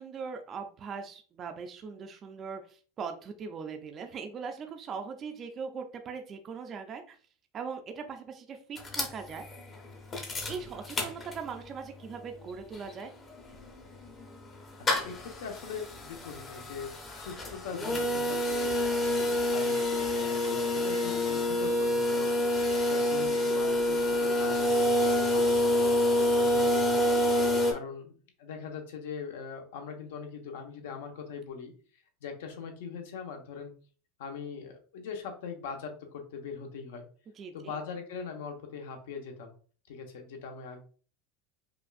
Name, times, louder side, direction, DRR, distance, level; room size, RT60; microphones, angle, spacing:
voice 1, 0.0-7.2 7.5-9.5 10.5-13.1 37.4-37.8, right 5 dB, 25° right, 5 dB, 0.4 m, -40 dB
sound 1, 8.8-11.7 12.1-12.2 12.4-27.7, left 1 dB, 20° left, 0.6 m, -28 dB
voice 2, 14.9-25.0 25.2-27.0 27.3-31.7 32.2-33.7 34.2-37.1 37.5-39.5 39.9-40.8, left 5 dB, 80° left, 4 dB, 1.0 m, -42 dB
5.0 x 2.5 x 2.4 m, 0.41 s
supercardioid pair, 170°, 0 cm